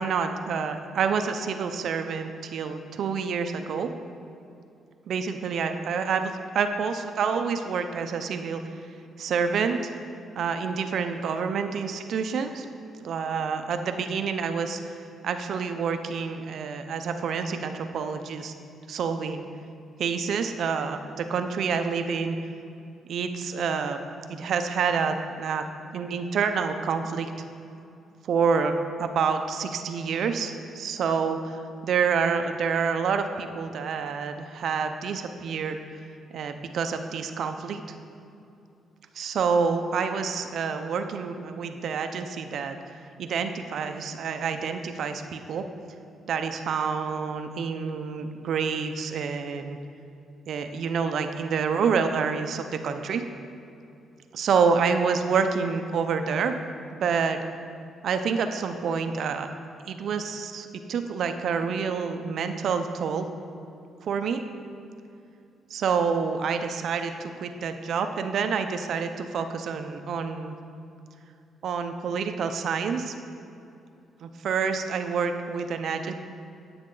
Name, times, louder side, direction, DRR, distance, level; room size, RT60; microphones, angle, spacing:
voice 1, 0.0-3.9 5.1-8.6 9.2-9.8 10.4-12.7 13.0-14.8 15.2-18.5 18.9-19.5 20.0-22.4 23.1-25.6 25.9-27.3 28.2-35.8 36.3-37.8 39.1-42.8 43.2-45.6 46.3-49.8 50.5-53.2 54.3-56.5 56.9-57.4 58.0-59.5 59.9-63.3 64.0-64.4 65.7-70.5 71.6-73.1 74.2-76.1, right 6 dB, 65° right, 7 dB, 0.6 m, -28 dB
9.7 x 7.8 x 3.9 m, 2.6 s
cardioid pair, 90°, 0 cm